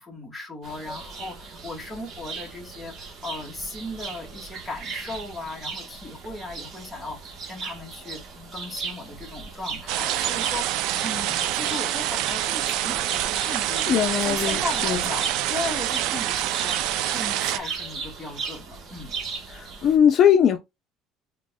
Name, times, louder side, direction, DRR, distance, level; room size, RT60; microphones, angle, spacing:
voice 1, 0.0-8.2 8.5-19.2, left 2 dB, 5° left, 1.9 m, -37 dB
sound 1, 0.6-20.0, right 5 dB, 45° right, 1.3 m, -37 dB
sound 2, 9.9-17.6, right 13 dB, 75° right, 0.4 m, -26 dB
voice 2, 13.9-15.0 19.5-20.6, left 8 dB, 45° left, 0.6 m, -20 dB
3.8 x 3.6 x 2.2 m
cardioid pair, 130°, 0 cm